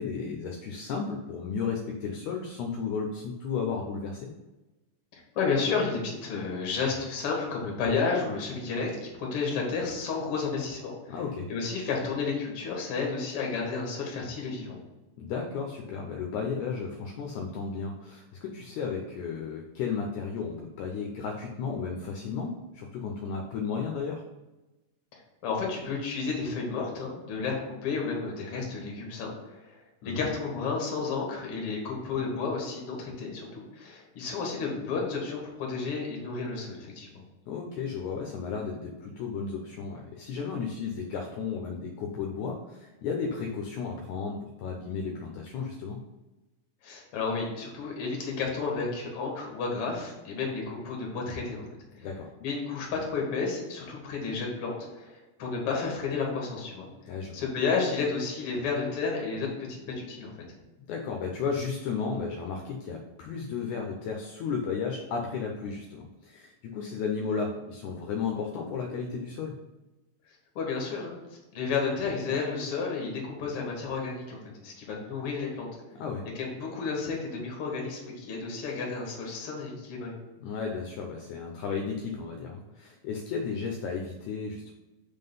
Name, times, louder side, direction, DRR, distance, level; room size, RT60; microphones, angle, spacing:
voice 1, 0.0-4.3 11.1-11.5 15.2-24.2 30.0-30.3 37.5-46.0 52.0-52.3 57.1-57.4 60.8-69.6 75.9-76.3 80.4-84.7, left 5 dB, 75° left, 1 dB, 2.0 m, -34 dB
voice 2, 5.1-11.2 11.5-14.8 25.1-37.2 46.8-51.7 51.9-52.1 52.4-56.9 57.3-60.3 70.3-75.7 76.4-80.1, left 4 dB, 50° left, -1 dB, 2.0 m, -32 dB
5.8 x 3.7 x 5.4 m, 1.1 s
omnidirectional pair, 3.7 m